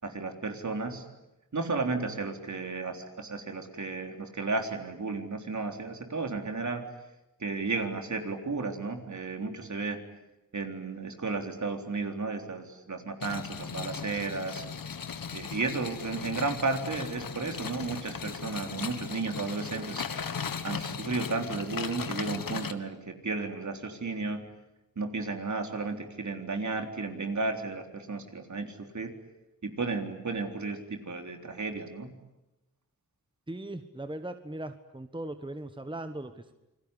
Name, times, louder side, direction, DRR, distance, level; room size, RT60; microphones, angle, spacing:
voice 1, 0.0-1.1 1.5-6.8 7.4-10.0 10.5-14.6 15.3-20.0 20.6-24.4 25.0-29.1 29.6-32.1, right 3 dB, 55° right, 5 dB, 3.9 m, -33 dB
sound 1, 13.2-22.7, left 6 dB, 75° left, 1.6 m, -37 dB
voice 2, 33.5-36.5, right 1 dB, 15° right, 9 dB, 1.4 m, -39 dB
28.5 x 21.0 x 10.0 m, 0.96 s
wide cardioid pair, 75°, 35 cm